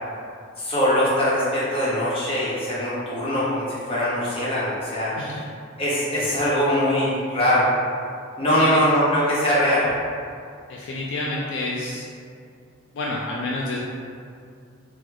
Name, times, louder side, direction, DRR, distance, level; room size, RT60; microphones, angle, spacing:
voice 1, 0.6-5.2 5.8-7.7 8.4-9.9, equal, 30° left, -8 dB, 0.8 m, -22 dB
voice 2, 10.7-12.1 12.9-13.8, left 2 dB, 60° left, -4 dB, 0.3 m, -28 dB
3.0 x 2.0 x 3.6 m, 2.3 s
head